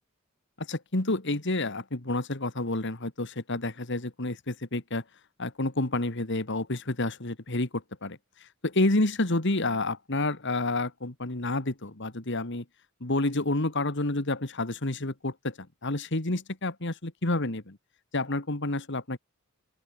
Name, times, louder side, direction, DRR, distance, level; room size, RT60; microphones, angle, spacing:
voice 1, 0.6-5.0 5.4-8.2 8.6-12.6 13.0-17.8 18.1-19.2, left 2 dB, 60° left, 2.3 m, -29 dB
open air
head